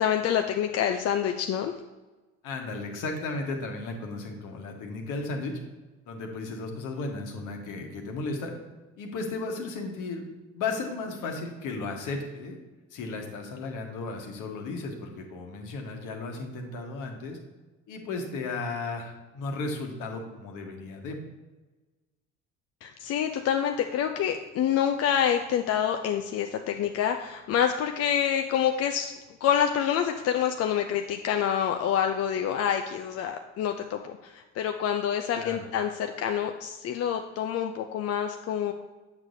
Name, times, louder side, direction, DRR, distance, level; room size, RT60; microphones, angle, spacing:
voice 1, 0.0-1.7 22.8-29.1 29.4-38.7, left 9 dB, 45° left, 5 dB, 0.5 m, -27 dB
voice 2, 2.4-5.6 6.1-8.5 9.0-10.2 10.5-12.6 12.9-17.4 17.9-21.2 35.3-35.7, left 3 dB, 60° left, 2 dB, 1.3 m, -35 dB
8.0 x 6.2 x 2.7 m, 1.2 s
hypercardioid pair, 60°, 35 cm